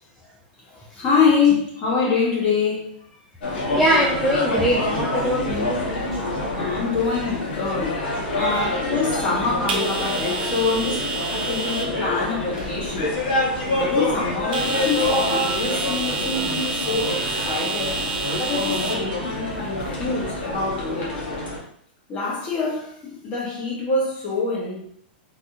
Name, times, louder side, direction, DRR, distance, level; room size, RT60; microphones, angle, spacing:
voice 1, 0.7-2.9 6.5-8.0 8.3-11.1 11.4-13.2 13.8-18.0 18.4-21.4 22.1-24.8, left 4 dB, 25° left, -4 dB, 1.1 m, -25 dB
sound 1, 3.4-21.6, left 2 dB, 85° left, 1.2 m, -27 dB
voice 2, 3.5-5.8, equal, ahead, -5 dB, 0.3 m, -22 dB
sound 2, 4.9-20.8, right 4 dB, 75° right, 0.6 m, -32 dB
3.4 x 2.7 x 2.4 m, 0.67 s
supercardioid pair, 155°, 5 cm